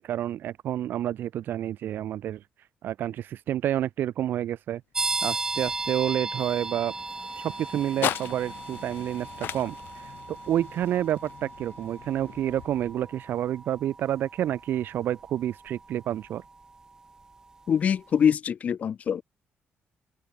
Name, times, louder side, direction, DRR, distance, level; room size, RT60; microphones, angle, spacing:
voice 1, 0.0-2.4 2.8-4.8 5.2-6.9 7.4-16.4, right 11 dB, 65° right, 2.4 m, -29 dB
sound 1, 4.9-17.5, right 3 dB, 15° right, 0.9 m, -36 dB
sound 2, 5.0-13.3, left 12 dB, 65° left, 1.1 m, -39 dB
voice 2, 17.7-19.2, left 8 dB, 40° left, 0.6 m, -24 dB
cardioid pair, 170°, 4 cm